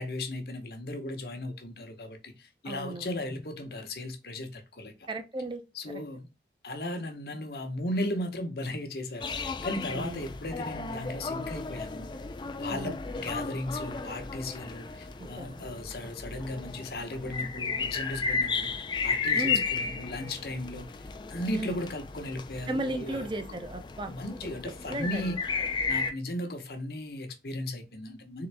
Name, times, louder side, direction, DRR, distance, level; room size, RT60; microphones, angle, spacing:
voice 1, 0.0-4.9 5.7-6.3 6.6-12.1 12.6-20.9 21.3-23.6 24.1-25.4 25.9-28.5, left 1 dB, 60° left, 0.9 m, -36 dB
voice 2, 2.6-3.2 5.1-5.6 5.9-6.0 9.9-10.3 12.7-13.0 15.2-15.6 19.3-19.6 21.5-21.8 22.7-24.1 24.4-24.5 24.9-25.7, right 2 dB, 25° right, 0.5 m, -36 dB
sound 1, 9.2-26.1, left 5 dB, 25° left, 0.3 m, -34 dB
3.8 x 3.5 x 3.3 m
head